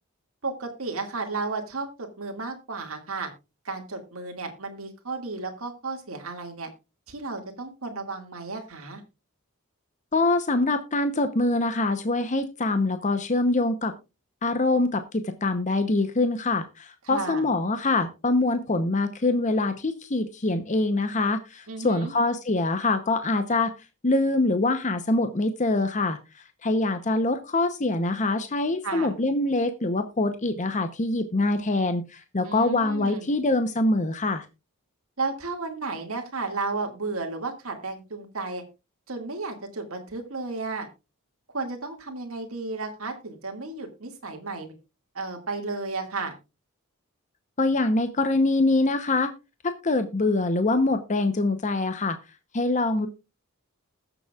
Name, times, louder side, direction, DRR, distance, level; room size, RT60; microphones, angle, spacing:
voice 1, 0.4-3.3 3.6-6.7 7.1-9.0 17.1-17.4 21.7-22.1 28.8-29.1 32.4-33.3 35.2-38.6 39.1-40.9 41.5-44.7 45.1-46.3, right 3 dB, 65° right, 3 dB, 2.1 m, -33 dB
voice 2, 10.1-13.9 14.4-23.7 24.0-26.2 26.6-34.4 47.6-49.3 49.6-52.2 52.5-53.1, left 2 dB, 35° left, 8 dB, 0.8 m, -24 dB
20.5 x 7.0 x 2.4 m, 0.27 s
head